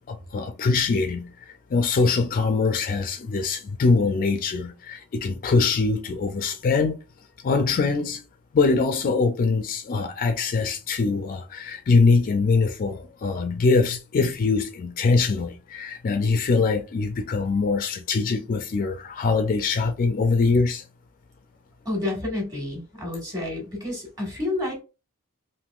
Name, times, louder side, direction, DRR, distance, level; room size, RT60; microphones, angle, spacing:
voice 1, 0.1-1.3 1.7-7.0 7.4-8.2 8.5-20.8, left 4 dB, 40° left, 0.3 m, -23 dB
voice 2, 21.8-24.8, left 2 dB, 20° right, 1.5 m, -29 dB
3.4 x 2.6 x 2.4 m
head